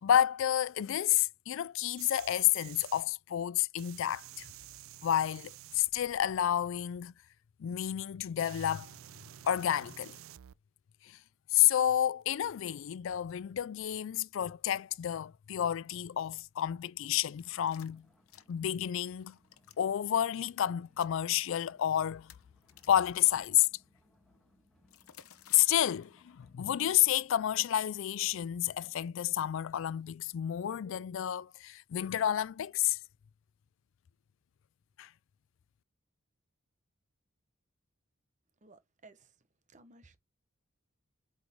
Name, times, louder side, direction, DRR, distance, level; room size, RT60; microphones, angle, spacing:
voice 1, 0.0-4.5 5.0-7.1 7.6-8.9 9.4-10.2 11.0-11.2 11.5-18.0 18.5-19.4 19.8-22.3 22.9-23.7 25.5-33.0 35.0-35.1, left 11 dB, 65° left, 0.3 m, -30 dB
sound 1, 2.0-3.0 3.8-6.7 7.7-7.8 8.4-10.5 12.2-12.3, right 13 dB, 70° right, 0.4 m, -51 dB
sound 2, 17.3-29.1, equal, ahead, 2.5 m, -69 dB
sound 3, 17.4-18.8 19.1-19.8 20.1-20.3 20.8-21.2 21.8-21.9 22.2-23.5 24.9-25.7, left 10 dB, 90° left, 0.7 m, -55 dB
voice 2, 38.6-39.3 39.7-40.2, right 2 dB, 35° right, 1.0 m, -58 dB
8.0 x 4.8 x 3.5 m
head